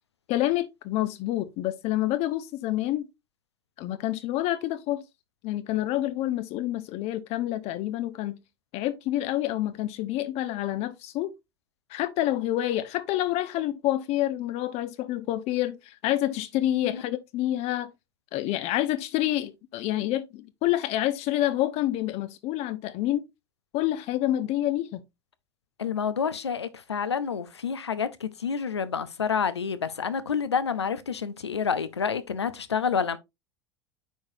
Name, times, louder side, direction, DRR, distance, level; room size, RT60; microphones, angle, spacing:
voice 1, 0.3-3.1 3.8-5.0 5.4-8.4 8.7-11.3 11.9-17.9 18.3-23.2 23.7-25.0, left 14 dB, 50° left, 0.8 m, -28 dB
voice 2, 25.8-33.2, left 6 dB, 90° left, 0.7 m, -28 dB
9.1 x 4.8 x 2.6 m
hypercardioid pair, 80°, 14 cm